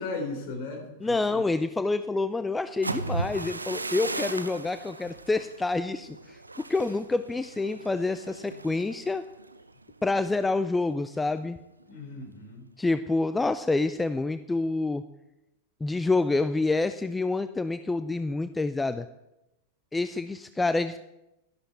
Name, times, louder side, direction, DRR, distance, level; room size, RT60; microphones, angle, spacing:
voice 1, 0.0-1.4 11.9-12.7, left 3 dB, 50° left, 4 dB, 3.5 m, -36 dB
voice 2, 1.0-9.2 10.0-11.6 12.8-15.0 15.8-19.1 19.9-21.0, left 3 dB, 10° left, 12 dB, 0.4 m, -27 dB
sound 1, 2.7-10.5 10.9-11.2 11.6-12.0, right 3 dB, 80° right, 0.6 m, -37 dB
12.5 x 11.5 x 4.5 m, 0.92 s
figure-of-eight pair, 90°, 0 cm